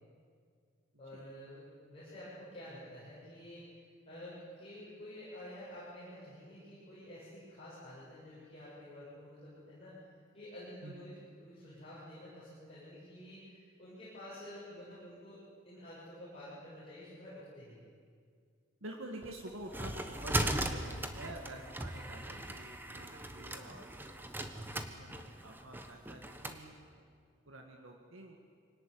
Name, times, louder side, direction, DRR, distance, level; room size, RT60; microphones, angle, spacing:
voice 1, 1.0-3.7 4.1-10.0 10.3-17.8 21.9-22.5, left 1 dB, 30° left, -11 dB, 7.5 m, -50 dB
voice 2, 18.8-27.1 27.5-28.4, right 1 dB, 85° right, 2 dB, 2.1 m, -49 dB
sound 1, 19.2-26.6, right 1 dB, 10° right, 1.2 m, -38 dB
25.0 x 18.0 x 9.8 m, 2.1 s
head